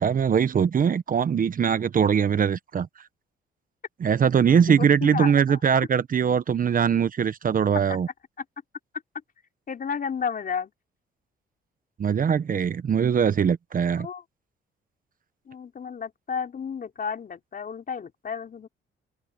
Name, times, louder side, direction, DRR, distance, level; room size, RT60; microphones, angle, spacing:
voice 1, 0.0-2.9 4.0-8.1 12.0-14.1, right 7 dB, 45° right, 1.0 m, -22 dB
voice 2, 4.8-5.6 7.9-8.0 8.4-8.5 9.7-10.7 14.0-14.2 15.5-18.7, left 6 dB, 45° left, 4.5 m, -32 dB
cardioid pair, 90°, 20 cm